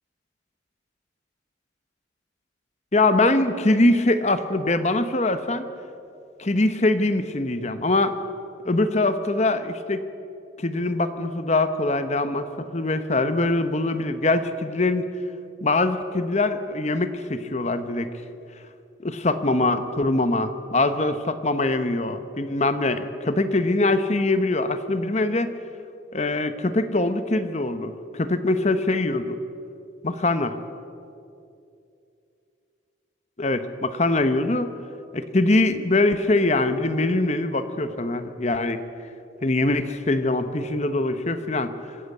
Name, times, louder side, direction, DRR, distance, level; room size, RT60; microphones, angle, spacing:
voice 1, 2.9-5.7 6.4-8.2 8.6-10.0 10.6-15.1 15.6-18.1 19.0-25.5 26.1-29.3 30.0-30.5 33.4-34.7 35.1-38.8 39.4-41.7, left 2 dB, 35° left, 10 dB, 1.0 m, -23 dB
25.0 x 14.0 x 8.0 m, 2.6 s
head